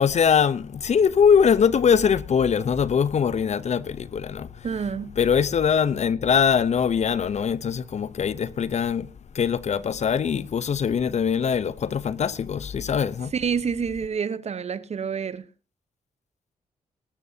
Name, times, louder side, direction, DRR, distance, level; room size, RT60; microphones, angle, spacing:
voice 1, 0.0-4.7 5.2-9.1 9.3-13.3, left 7 dB, 55° left, 0.8 m, -22 dB
voice 2, 4.6-5.2 13.3-15.5, right 6 dB, 50° right, 1.0 m, -28 dB
20.0 x 12.0 x 2.8 m
supercardioid pair, 55°, 14 cm